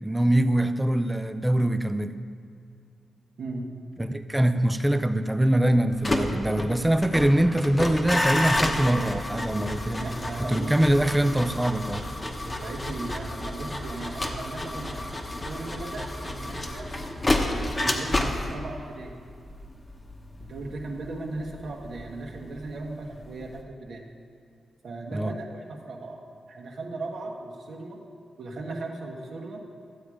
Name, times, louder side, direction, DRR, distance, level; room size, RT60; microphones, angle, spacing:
voice 1, 0.0-2.2 4.0-10.1 10.5-12.0 25.1-25.3, right 1 dB, 10° right, 10 dB, 0.4 m, -23 dB
voice 2, 3.4-3.7 10.0-11.0 12.4-15.1 15.4-16.9 17.4-19.2 20.4-24.1 24.8-26.2 26.5-28.0 28.4-29.7, right 2 dB, 65° right, -1 dB, 1.4 m, -37 dB
sound 1, 5.9-22.9 23.2-23.6, left 1 dB, 15° left, 1.0 m, -30 dB
13.5 x 8.5 x 5.0 m, 2.3 s
wide cardioid pair, 160°, 0 cm